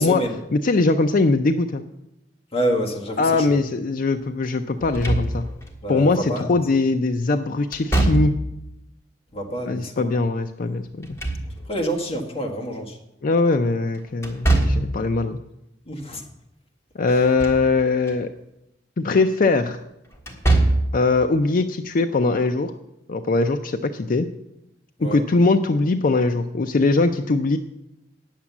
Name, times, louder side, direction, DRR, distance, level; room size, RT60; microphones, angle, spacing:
voice 1, 0.0-0.4 2.5-3.6 5.8-6.5 9.3-10.1 11.7-13.0 15.8-16.2 25.0-25.2, equal, 30° left, 0 dB, 1.5 m, -27 dB
voice 2, 0.5-1.8 3.2-5.5 5.9-8.3 9.7-11.2 13.2-15.4 17.0-18.3 19.0-19.8 20.9-22.7 23.1-24.3 25.0-27.6, left 3 dB, 50° left, 7 dB, 0.4 m, -21 dB
Slam / Thump thud, 4.8-5.7 7.7-8.6 10.9-11.9 14.2-15.0 17.1-17.7 18.1-18.2 20.2-21.0, right 2 dB, 15° left, 1.6 m, -22 dB
9.7 x 7.4 x 7.1 m, 0.88 s
head